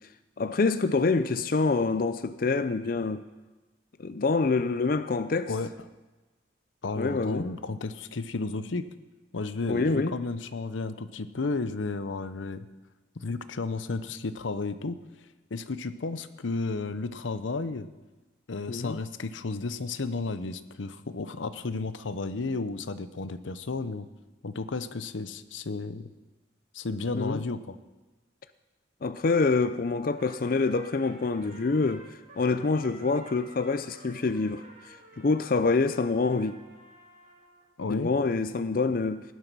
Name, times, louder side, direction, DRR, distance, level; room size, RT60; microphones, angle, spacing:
voice 1, 0.4-3.2 4.0-5.5 7.0-7.5 9.7-10.1 18.7-19.0 27.1-27.4 29.0-32.0 32.4-36.5 37.9-39.2, left 3 dB, 50° left, 0.5 m, -26 dB
voice 2, 6.8-8.9 9.3-12.7 13.2-15.0 15.5-17.9 18.5-24.1 24.4-26.1 26.7-27.8 37.8-38.1, left 3 dB, 85° left, 0.7 m, -33 dB
Trumpet, 30.1-37.7, right 1 dB, 45° right, 3.3 m, -52 dB
16.5 x 11.5 x 6.1 m
head